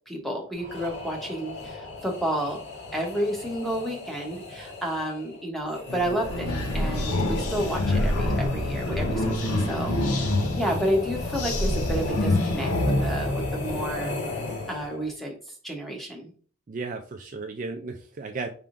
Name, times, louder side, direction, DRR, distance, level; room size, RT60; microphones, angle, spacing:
voice 1, 0.1-2.6 2.9-14.2 14.7-15.3 15.6-16.3, right 1 dB, ahead, 0 dB, 0.9 m, -31 dB
sound 1, 0.5-15.1, left 3 dB, 55° left, 1.4 m, -36 dB
sound 2, 5.9-14.0, left 1 dB, 90° left, 0.9 m, -26 dB
voice 2, 16.7-18.5, right 3 dB, 35° right, 4 dB, 0.3 m, -34 dB
5.7 x 3.5 x 2.5 m, 0.42 s
head